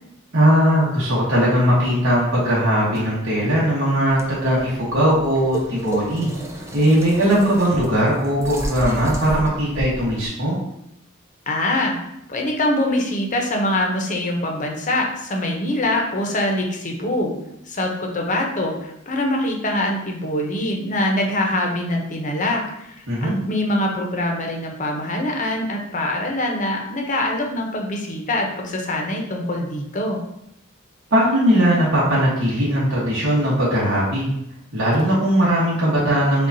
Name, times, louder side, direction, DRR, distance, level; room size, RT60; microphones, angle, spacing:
voice 1, 0.3-6.3 6.7-10.6 23.1-23.4 31.1-34.3 34.7-36.5, equal, 65° right, -7 dB, 1.2 m, -19 dB
sound 1, 4.1-10.3, right 1 dB, 15° right, 0.5 m, -32 dB
voice 2, 11.5-12.0 12.3-17.3 17.7-30.2, left 1 dB, 40° left, 1 dB, 0.7 m, -24 dB
6.5 x 2.4 x 2.7 m, 0.80 s
head